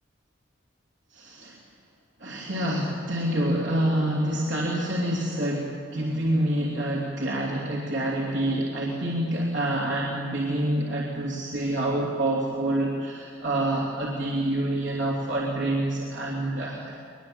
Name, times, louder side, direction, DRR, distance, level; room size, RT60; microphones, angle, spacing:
voice 1, 1.1-1.6 2.2-17.0, right 1 dB, 70° right, -3 dB, 3.2 m, -27 dB
23.5 x 21.5 x 8.0 m, 2.4 s
head